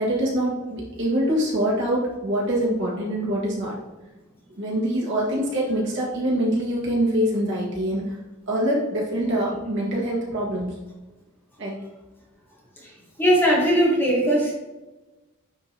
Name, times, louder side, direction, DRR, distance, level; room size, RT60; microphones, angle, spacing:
voice 1, 0.0-3.8 4.6-8.0 8.5-10.7 11.6-11.8, right 1 dB, 55° right, -5 dB, 1.9 m, -24 dB
voice 2, 13.2-14.5, equal, 10° left, -4 dB, 1.2 m, -19 dB
9.5 x 3.7 x 2.9 m, 1.1 s
head